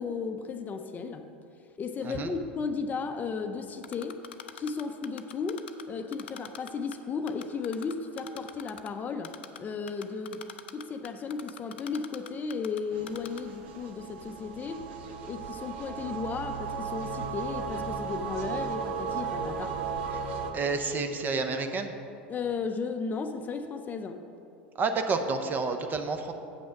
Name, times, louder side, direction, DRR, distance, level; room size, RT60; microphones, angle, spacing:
voice 1, 0.0-1.3 1.8-4.2 4.5-14.9 15.3-19.8 22.3-24.2, left 5 dB, 30° left, 7 dB, 0.6 m, -35 dB
Typing, 3.8-5.8 6.1-7.0 7.3-8.9 9.2-9.6 9.9-12.8 13.1-13.4, left 10 dB, 80° left, 0.5 m, -42 dB
sound 1, 12.9-20.5, right 5 dB, 70° right, 0.9 m, -35 dB
voice 2, 20.5-21.9 24.8-26.3, right 4 dB, 30° right, 7 dB, 0.8 m, -29 dB
7.9 x 6.3 x 5.8 m, 2.6 s
hypercardioid pair, 90°, 6 cm